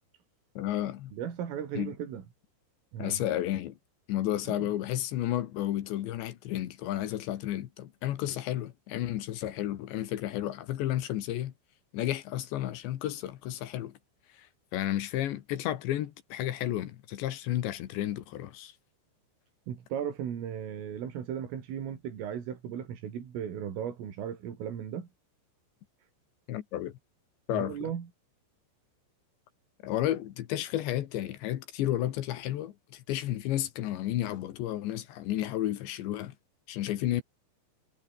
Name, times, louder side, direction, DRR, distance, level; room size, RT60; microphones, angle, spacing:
voice 1, 0.6-1.1 1.8-1.9 3.0-3.8 4.1-11.5 11.9-13.9 14.3-14.5 14.7-18.7 26.5-26.9 27.5-27.9 29.8-36.3 36.7-37.2, left 13 dB, 70° left, 3.5 m, -32 dB
voice 2, 1.1-2.2 2.9-3.2 4.5-4.7 19.7-25.1 27.5-28.1, right 9 dB, 90° right, 6.2 m, -36 dB
omnidirectional pair, 5.7 m